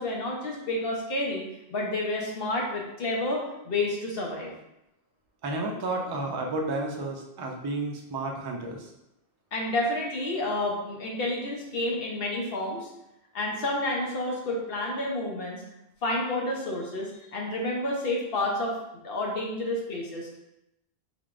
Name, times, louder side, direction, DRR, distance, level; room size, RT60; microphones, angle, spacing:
voice 1, 0.0-1.4 1.7-4.5 9.5-12.9 13.3-15.6 16.0-18.8 19.0-20.4, left 1 dB, 65° left, -2 dB, 0.9 m, -30 dB
voice 2, 5.4-8.9, right 2 dB, 40° right, 1 dB, 0.3 m, -31 dB
3.5 x 3.4 x 2.5 m, 0.86 s
omnidirectional pair, 1.1 m